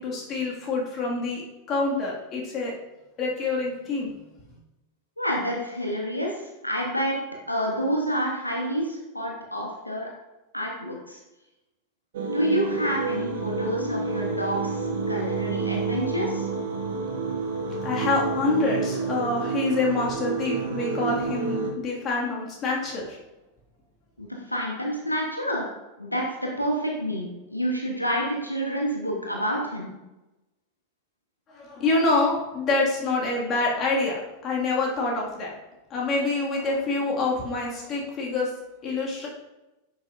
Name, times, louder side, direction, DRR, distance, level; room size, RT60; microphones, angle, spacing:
voice 1, 0.0-2.8 3.2-4.1 17.8-21.6 21.8-23.2 31.5-35.6 35.9-38.5 38.8-39.3, left 3 dB, 30° left, -3 dB, 1.9 m, -26 dB
voice 2, 5.2-7.2 7.5-10.1 10.5-11.2 12.3-16.5 24.2-25.7 26.0-30.0, equal, 85° left, 0 dB, 1.1 m, -28 dB
sound 1, 12.1-21.7, right 4 dB, 55° right, 0.9 m, -29 dB
9.6 x 6.3 x 2.5 m, 1.0 s
figure-of-eight pair, 90°, 0 cm